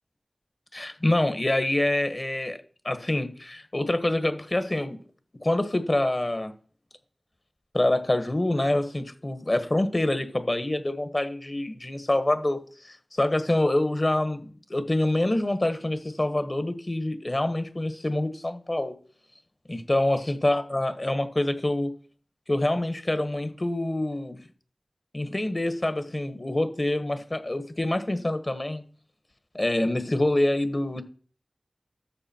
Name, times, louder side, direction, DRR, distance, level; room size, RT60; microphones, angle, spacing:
voice 1, 0.7-2.6 2.8-5.0 5.4-6.5 7.7-18.9 19.7-21.9 22.5-24.4 25.1-28.8 29.5-31.0, left 1 dB, 40° left, 1.4 m, -26 dB
12.5 x 7.0 x 4.5 m
wide cardioid pair, 60°, 0 cm